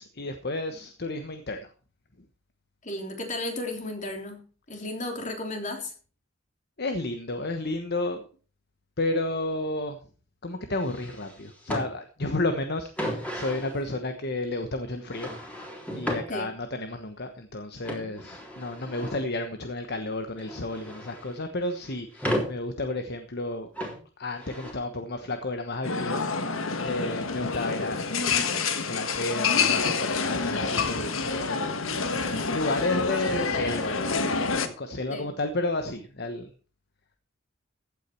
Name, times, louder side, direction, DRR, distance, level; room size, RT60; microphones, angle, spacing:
voice 1, 0.0-1.7 6.8-8.3 9.0-10.0 10.4-15.3 15.9-23.7 24.2-28.6 28.9-31.1 31.5-31.8 32.5-36.5, left 2 dB, 55° left, 7 dB, 1.2 m, -32 dB
voice 2, 2.8-4.4 4.7-5.9 16.3-16.5 18.0-18.2 27.0-27.2 35.1-35.3, left 1 dB, 40° left, 3 dB, 3.3 m, -34 dB
sound 1, 10.8-11.9 12.8-13.8 15.0-16.2 17.8-19.2 20.1-21.4 21.7-22.5 23.7-24.0 24.3-24.7, equal, 5° left, 3.6 m, -34 dB
sound 2, 25.8-34.7, left 4 dB, 80° left, 1.5 m, -27 dB
15.5 x 8.6 x 4.5 m, 0.38 s
head